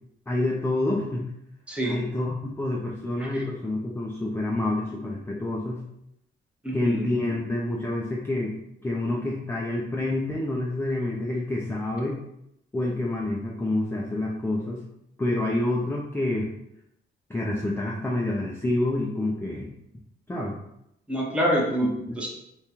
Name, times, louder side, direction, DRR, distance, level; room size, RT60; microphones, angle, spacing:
voice 1, 0.3-1.2 1.8-5.8 6.7-8.6 8.8-12.2 12.7-14.8 15.2-16.5 17.3-19.7 20.3-20.5 22.1-22.2, left 2 dB, 10° left, -3 dB, 0.4 m, -28 dB
voice 2, 1.7-2.0 3.2-3.4 6.6-7.1 21.1-21.9 22.2-22.3, equal, 5° right, -2 dB, 0.8 m, -26 dB
3.5 x 2.2 x 2.9 m, 0.81 s
cardioid pair, 90°, 20 cm